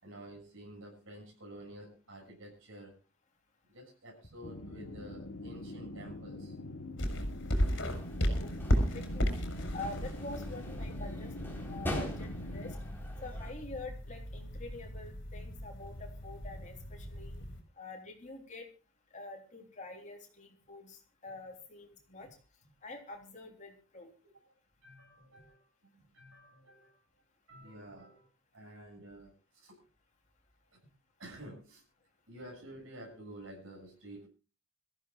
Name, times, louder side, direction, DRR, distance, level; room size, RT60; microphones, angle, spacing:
voice 1, 0.0-3.0 3.7-6.5 24.5-24.6 24.8-27.0 27.5-28.3 28.5-29.8 31.2-31.8 32.3-34.3, right 1 dB, 80° right, -1 dB, 6.6 m, -50 dB
sound 1, 4.4-12.8, left 1 dB, 80° left, 1.3 m, -44 dB
sound 2, 7.0-17.6, equal, 65° left, 4.4 m, -35 dB
sound 3, 7.6-13.5, left 1 dB, 10° left, 4.0 m, -43 dB
voice 2, 8.9-9.4 9.7-12.7 13.2-17.4 17.8-18.7 19.1-22.3 22.8-24.1, left 2 dB, 35° left, 2 dB, 3.4 m, -46 dB
25.5 x 14.5 x 2.4 m, 0.31 s
head